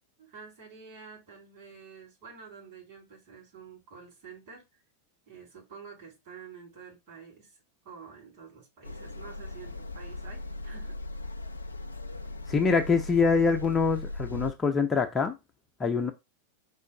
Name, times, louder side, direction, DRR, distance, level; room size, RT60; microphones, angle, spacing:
voice 1, 0.2-4.6 5.3-7.6 7.9-11.0, right 6 dB, 45° right, 3.4 m, -49 dB
sound 1, 8.8-14.5, left 2 dB, 80° left, 0.4 m, -38 dB
voice 2, 12.5-15.4 15.8-16.1, left 5 dB, 20° left, 0.6 m, -24 dB
4.7 x 2.5 x 4.6 m
figure-of-eight pair, 90°, 0 cm